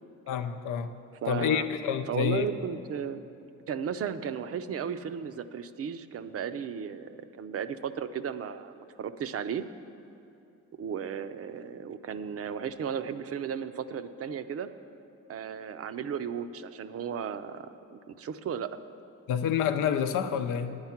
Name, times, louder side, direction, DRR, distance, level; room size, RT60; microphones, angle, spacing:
voice 1, 0.3-0.9 1.3-2.5 19.3-20.8, left 8 dB, 85° left, 0.7 m, -28 dB
voice 2, 1.2-1.7 2.1-3.2 3.7-9.6 10.8-14.7 15.3-18.8, right 7 dB, 50° right, 0.5 m, -35 dB
9.6 x 9.5 x 5.8 m
cardioid pair, 90°, 30 cm